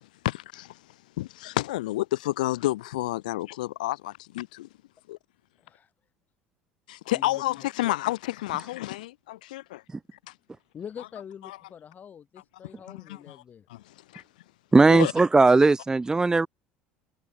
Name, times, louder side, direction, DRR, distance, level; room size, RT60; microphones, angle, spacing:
voice 1, 0.2-0.7 1.2-4.7 5.1-5.2 6.9-9.8 11.4-11.6 12.9-13.4 13.7-13.8 14.1-14.2 14.9-15.1, left 17 dB, 75° left, 2.4 m, -30 dB
voice 2, 7.1-8.0 10.7-13.7, left 8 dB, 40° left, 4.7 m, -44 dB
voice 3, 14.7-16.5, right 3 dB, 15° right, 0.6 m, -18 dB
hypercardioid pair, 65°, 4 cm